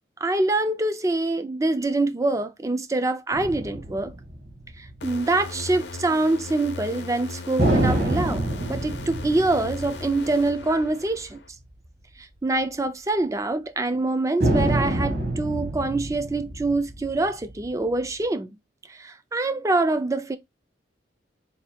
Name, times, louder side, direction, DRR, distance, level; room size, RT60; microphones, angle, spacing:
voice 1, 0.2-4.1 4.8-11.4 12.2-18.6 18.9-20.4, right 2 dB, 15° right, 0.3 m, -25 dB
sound 1, 3.3-5.2 7.6-11.3 11.7-11.8 14.4-18.1, right 1 dB, 55° right, 1.3 m, -27 dB
sound 2, 5.0-11.5, left 4 dB, 60° left, 0.5 m, -38 dB
3.9 x 2.2 x 4.2 m
head